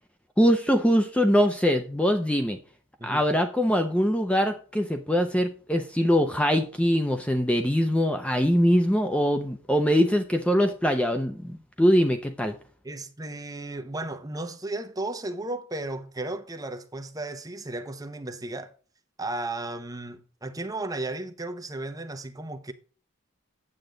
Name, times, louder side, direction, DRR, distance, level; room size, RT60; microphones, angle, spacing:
voice 1, 0.4-2.6 3.0-12.6, equal, 5° left, 0.6 m, -23 dB
voice 2, 12.8-18.7 19.2-22.7, right 2 dB, 20° right, 0.9 m, -34 dB
8.8 x 7.8 x 3.9 m
head